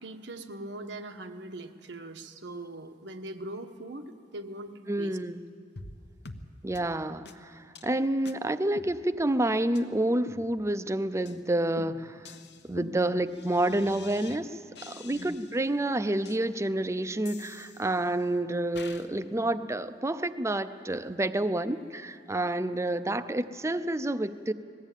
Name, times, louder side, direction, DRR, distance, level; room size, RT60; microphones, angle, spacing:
voice 1, 0.0-5.2 15.1-15.4, right 1 dB, 90° right, 6 dB, 1.2 m, -41 dB
voice 2, 4.9-5.4 6.6-12.2 12.7-14.6 14.9-24.5, right 1 dB, 15° right, 12 dB, 0.6 m, -29 dB
sound 1, 5.8-6.0 6.3-6.5 6.8-6.9 7.3-7.4 7.8-7.9 8.3-8.4 8.8-9.4 9.8-9.9 10.3-10.9 11.3-11.4 11.8-14.4 14.8-15.7 16.3-16.4 17.3-18.2 18.8-19.1, left 3 dB, 70° left, 1.0 m, -46 dB
20.0 x 15.0 x 9.1 m, 2.3 s
head